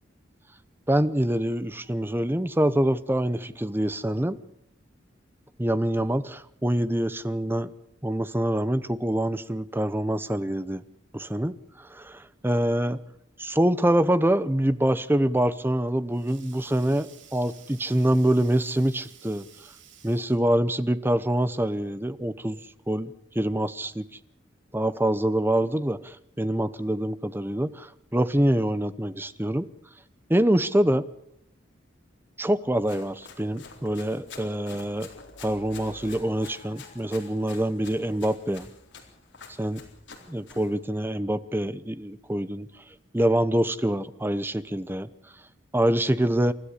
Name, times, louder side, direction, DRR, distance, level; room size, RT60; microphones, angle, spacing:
voice 1, 0.9-4.4 5.6-7.7 8.0-10.8 11.1-13.0 13.4-19.4 20.0-22.6 22.9-24.0 24.7-29.7 30.3-31.1 32.4-35.1 35.4-38.7 39.6-39.8 40.3-42.7 43.1-45.1 45.7-46.5, right 1 dB, 10° right, 15 dB, 0.7 m, -25 dB
Sink (filling or washing), 15.9-20.6, right 9 dB, 70° right, 2.9 m, -53 dB
sound 1, 32.2-39.0, equal, 40° left, 4.8 m, -52 dB
Run, 32.8-40.7, left 5 dB, 70° left, 3.9 m, -48 dB
28.5 x 13.0 x 8.3 m, 0.77 s
head